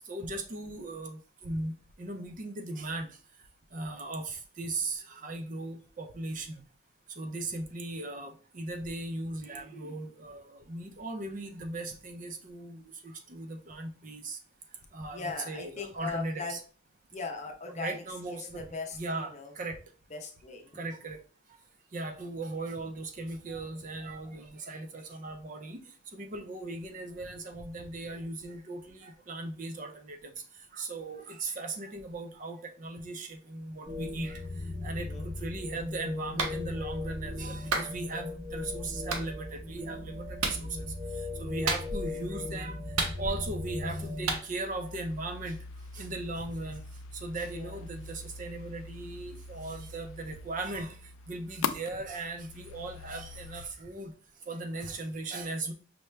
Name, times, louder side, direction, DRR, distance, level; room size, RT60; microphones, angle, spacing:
voice 1, 0.0-1.7 2.0-3.1 3.7-6.6 7.2-14.4 14.9-16.6 17.8-18.6 18.9-19.8 20.7-21.2 21.9-25.8 26.1-30.3 30.7-34.4 34.8-40.9 41.4-42.8 43.2-45.6 45.9-46.8 47.1-51.0 51.3-54.1 54.5-55.7, right 2 dB, 40° right, 6 dB, 0.4 m, -38 dB
voice 2, 15.1-16.6 17.1-19.5 20.1-20.8 35.0-35.3 41.4-41.7 47.5-47.9, left 4 dB, 35° left, 3 dB, 0.6 m, -40 dB
sound 1, 33.8-44.4, left 2 dB, 10° right, 0.9 m, -38 dB
Clapping, 36.4-36.6 37.7-37.9 39.1-39.3 40.4-40.6 41.7-42.1 43.0-43.5 44.3-44.4, right 3 dB, 85° right, 0.7 m, -30 dB
sound 2, 44.4-53.7, left 5 dB, 75° left, 0.3 m, -42 dB
5.6 x 2.1 x 3.2 m, 0.39 s
head